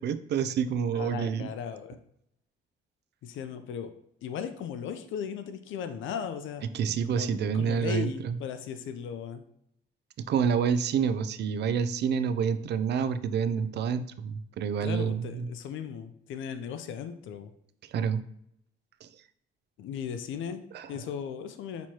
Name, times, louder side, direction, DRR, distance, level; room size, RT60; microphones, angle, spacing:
voice 1, 0.0-1.5 6.7-8.4 10.3-15.5 17.9-18.2 19.0-19.1 20.7-20.9, right 7 dB, 60° right, 12 dB, 0.4 m, -28 dB
voice 2, 0.9-2.0 3.2-3.9 4.2-6.6 7.1-9.4 14.8-17.5 19.8-20.6 20.9-21.9, left 7 dB, 80° left, 9 dB, 0.5 m, -37 dB
6.1 x 3.1 x 2.8 m, 0.74 s
cardioid pair, 90°, 20 cm